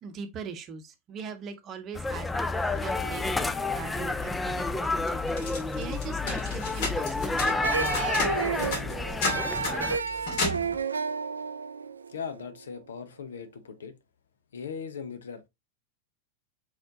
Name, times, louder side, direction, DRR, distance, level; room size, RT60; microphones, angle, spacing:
voice 1, 0.0-5.3 5.7-8.0, right 6 dB, 30° right, 0.8 m, -41 dB
sound 1, 1.9-10.0, left 3 dB, 10° left, 0.4 m, -30 dB
sound 2, 5.3-10.8, left 2 dB, 50° left, 2.2 m, -33 dB
sound 3, 7.6-12.7, right 5 dB, 75° right, 0.3 m, -31 dB
voice 2, 12.1-13.9 14.5-15.5, left 6 dB, 65° left, 0.7 m, -39 dB
4.3 x 4.3 x 2.7 m
figure-of-eight pair, 90°, 0 cm